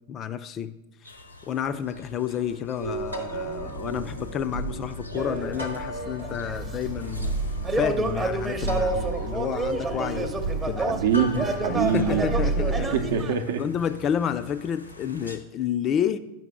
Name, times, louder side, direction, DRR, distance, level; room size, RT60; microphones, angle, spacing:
voice 1, 0.1-0.7 1.0-1.1 1.4-7.3 7.7-10.9 11.7-13.2 13.6-16.2, left 9 dB, 30° left, 12 dB, 0.4 m, -30 dB
sound 1, 1.0-15.4, equal, 85° left, 0.7 m, -46 dB
sound 2, 2.8-12.8, right 3 dB, 90° right, 1.0 m, -32 dB
sound 3, 5.1-13.4, right 2 dB, 15° right, 0.7 m, -30 dB
voice 2, 10.9-12.2 12.9-13.6, right 7 dB, 60° right, 7 dB, 0.6 m, -24 dB
9.1 x 5.9 x 3.6 m, 0.91 s
figure-of-eight pair, 90°, 0 cm